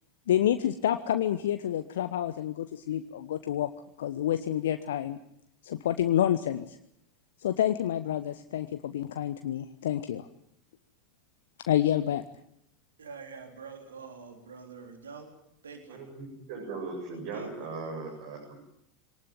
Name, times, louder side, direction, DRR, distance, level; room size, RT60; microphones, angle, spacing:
voice 1, 0.3-3.7 4.0-5.2 5.6-6.8 7.4-10.3 11.7-12.2, left 11 dB, 65° left, 9 dB, 1.0 m, -28 dB
voice 2, 13.0-15.3 15.6-16.0 17.3-17.7, right 5 dB, 75° right, 4 dB, 3.6 m, -45 dB
voice 3, 15.9-18.6, right 3 dB, 55° right, 0 dB, 7.1 m, -38 dB
23.5 x 19.0 x 9.0 m, 0.73 s
figure-of-eight pair, 80°, 0 cm